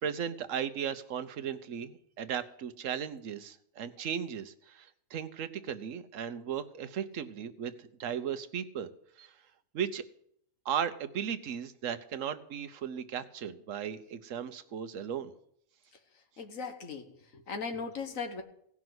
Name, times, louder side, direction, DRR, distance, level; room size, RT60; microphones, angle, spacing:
voice 1, 0.0-8.9 9.2-9.3 9.7-10.0 10.6-15.3, right 8 dB, 80° right, 11 dB, 1.2 m, -36 dB
voice 2, 16.4-18.4, left 4 dB, 85° left, 6 dB, 1.7 m, -38 dB
16.5 x 6.0 x 7.8 m, 0.71 s
omnidirectional pair, 1.3 m